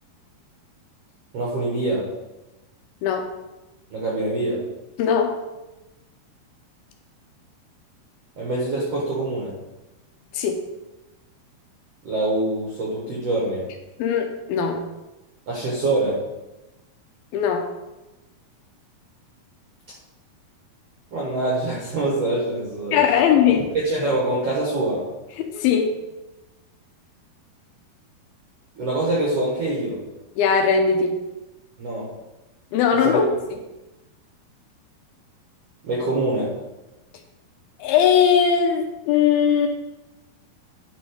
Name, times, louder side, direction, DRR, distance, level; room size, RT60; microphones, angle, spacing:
voice 1, 1.3-2.1 3.9-4.6 8.4-9.5 12.0-13.6 15.5-16.2 21.1-23.0 23.7-25.0 28.8-30.0 31.8-32.1 33.0-33.2 35.8-36.5, right 2 dB, 60° right, -5 dB, 1.7 m, -24 dB
voice 2, 5.0-5.4 10.3-10.6 14.0-14.8 17.3-17.7 22.9-23.7 25.4-26.0 30.4-31.1 32.7-33.2 37.8-39.7, left 7 dB, 80° left, 4 dB, 2.5 m, -19 dB
9.3 x 3.9 x 4.9 m, 1.0 s
omnidirectional pair, 4.5 m